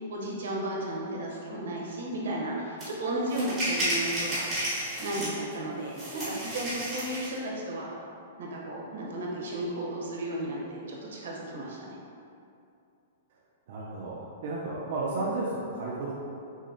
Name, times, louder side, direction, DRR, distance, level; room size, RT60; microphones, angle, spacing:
voice 1, 0.1-4.4 5.0-7.9 8.4-11.9, right 1 dB, 80° right, -3 dB, 0.9 m, -34 dB
sound 1, 2.8-2.9 3.3-5.5 5.9-7.4, equal, 10° right, 1.2 m, -32 dB
voice 2, 13.7-16.1, right 2 dB, 50° right, -5 dB, 0.4 m, -33 dB
6.0 x 2.0 x 2.8 m, 2.6 s
hypercardioid pair, 175°, 0 cm